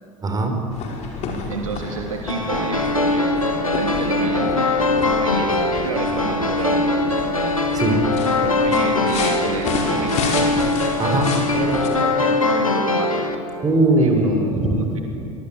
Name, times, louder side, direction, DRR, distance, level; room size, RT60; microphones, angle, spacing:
voice 1, 0.2-0.6 5.0-5.1 5.4-5.5 7.7-8.0 11.0-11.3 13.6-14.8, right 1 dB, 20° right, 4 dB, 5.2 m, -20 dB
sound 1, 0.7-11.9, left 3 dB, 40° left, 5.2 m, -31 dB
voice 2, 1.5-5.5 5.8-7.4 8.4-10.1 11.5-13.3 14.0-15.0, right 4 dB, 75° right, 2 dB, 2.9 m, -30 dB
sound 2, 2.3-13.4, left 2 dB, 85° left, 2.1 m, -21 dB
24.0 x 23.5 x 9.1 m, 2.7 s
figure-of-eight pair, 75°, 17 cm